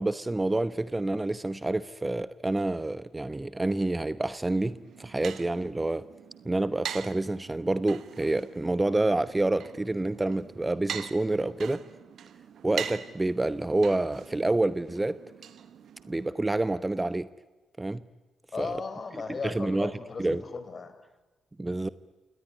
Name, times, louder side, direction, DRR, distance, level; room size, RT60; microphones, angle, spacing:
voice 1, 0.0-6.0 6.4-11.8 12.6-15.2 16.1-17.3 17.8-18.0 18.6-18.7 19.3-19.9 20.2-20.4 21.6-21.9, right 2 dB, 20° right, 16 dB, 0.9 m, -28 dB
sound 1, 4.6-16.3, right 8 dB, 60° right, 1.4 m, -43 dB
voice 2, 18.5-20.9, left 4 dB, 40° left, 10 dB, 4.4 m, -36 dB
29.0 x 19.0 x 9.9 m, 1.2 s
hypercardioid pair, 40°, 0 cm